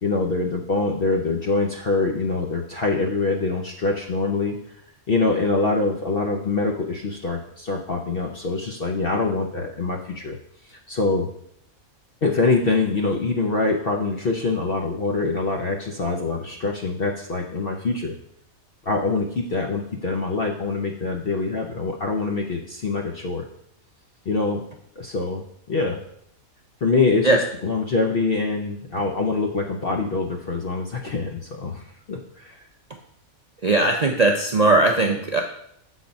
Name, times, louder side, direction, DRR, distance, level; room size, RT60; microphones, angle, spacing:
voice 1, 0.0-4.6 5.1-10.4 10.7-11.3 12.2-18.1 18.9-23.4 24.3-24.6 25.0-26.0 26.8-32.6, left 3 dB, 50° left, 1 dB, 0.8 m, -24 dB
voice 2, 33.6-35.4, right 2 dB, 55° right, 2 dB, 0.4 m, -18 dB
7.0 x 4.1 x 5.2 m, 0.73 s
omnidirectional pair, 1.5 m